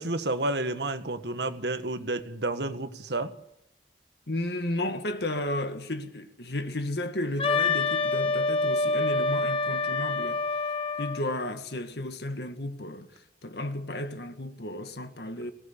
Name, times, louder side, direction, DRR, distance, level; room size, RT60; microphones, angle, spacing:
voice 1, 0.0-3.3, right 2 dB, 70° right, 1.6 m, -30 dB
voice 2, 4.3-10.4 11.0-15.5, left 1 dB, 65° left, 1.9 m, -33 dB
Wind instrument woodwind instrument, 7.4-11.2, left 3 dB, 30° left, 1.7 m, -26 dB
24.0 x 18.0 x 8.5 m
head